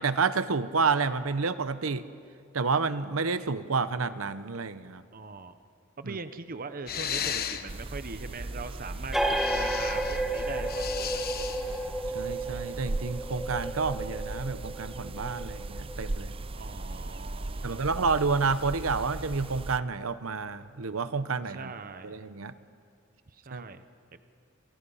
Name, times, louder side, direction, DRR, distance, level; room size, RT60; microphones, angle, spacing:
voice 1, 0.0-2.0 2.5-5.0 6.0-6.2 12.1-16.3 17.6-21.7 22.0-22.5 23.5-23.6, right 4 dB, 85° right, 13 dB, 0.9 m, -29 dB
voice 2, 5.1-5.6 6.0-11.2 16.5-17.9 21.5-22.2 23.3-23.8 24.1-24.2, right 4 dB, 45° right, 10 dB, 0.9 m, -41 dB
sound 1, 6.9-12.4, left 8 dB, 50° left, 1.1 m, -37 dB
sound 2, 7.7-19.8, right 2 dB, 25° right, 0.6 m, -38 dB
sound 3, 9.1-16.3, right 1 dB, ahead, 2.0 m, -32 dB
28.5 x 28.5 x 5.6 m, 2.4 s
head